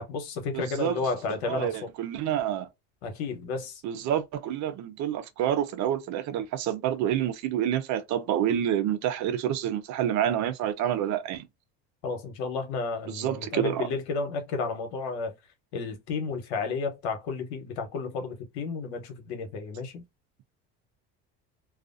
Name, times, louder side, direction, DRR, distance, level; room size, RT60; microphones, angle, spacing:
voice 1, 0.0-1.7 3.0-3.8 12.0-15.3 15.7-20.0, left 4 dB, 85° left, 1.1 m, -32 dB
voice 2, 0.5-1.0 1.3-2.7 3.8-11.5 13.1-13.9, right 10 dB, 60° right, 0.6 m, -28 dB
2.4 x 2.4 x 2.5 m
supercardioid pair, 90°, 32 cm